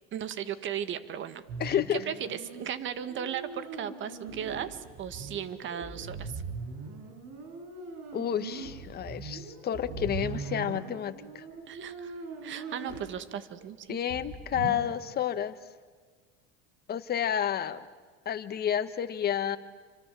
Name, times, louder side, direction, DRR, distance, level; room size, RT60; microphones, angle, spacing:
voice 1, 0.1-6.4 11.7-12.1 12.4-14.0, right 9 dB, 40° right, 12 dB, 1.9 m, -36 dB
sound 1, 1.5-13.1 13.6-13.7 14.0-14.8, right 4 dB, 60° right, 7.2 m, -41 dB
voice 2, 1.6-2.0 8.1-11.4 13.9-15.5 16.9-17.9 18.2-19.6, left 9 dB, 35° left, 11 dB, 1.6 m, -30 dB
29.5 x 25.5 x 7.8 m, 1.5 s
supercardioid pair, 120°, 29 cm